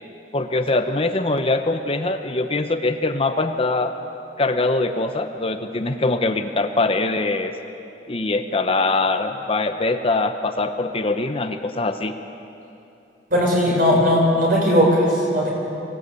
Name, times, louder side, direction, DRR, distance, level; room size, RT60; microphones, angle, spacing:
voice 1, 0.3-4.0 4.4-7.5 8.1-12.1, left 2 dB, 30° left, 7 dB, 0.9 m, -22 dB
voice 2, 13.3-15.5, equal, 50° right, -2 dB, 6.5 m, -18 dB
24.5 x 17.0 x 8.4 m, 2.9 s
head